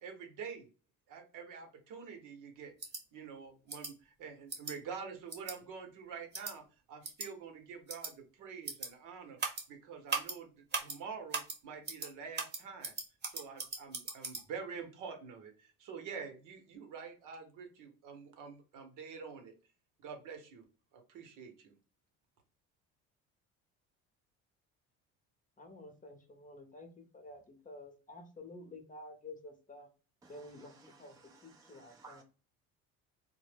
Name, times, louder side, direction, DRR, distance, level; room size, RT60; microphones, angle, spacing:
voice 1, 0.0-0.7 1.1-2.7 3.1-9.4 9.7-10.5 10.8-12.9 13.3-19.5 20.0-20.7 20.9-21.7, right 6 dB, 65° right, 0.9 m, -47 dB
sound 1, 2.8-3.0 3.7-3.9 4.5-4.7 5.3-5.5 6.3-6.5 7.0-7.3 7.9-8.1 8.6-8.9 9.4-9.6 10.1-10.3 10.7-11.0 11.3-11.6 11.8-12.1 12.3-14.4, right 4 dB, 30° right, 0.9 m, -38 dB
voice 2, 25.6-29.9 30.3-31.1 31.4-32.2, left 2 dB, 25° left, 0.8 m, -51 dB
voice 3, 30.2-32.2, right 4 dB, 10° right, 0.5 m, -58 dB
2.1 x 2.0 x 3.2 m
supercardioid pair, 75°, 33 cm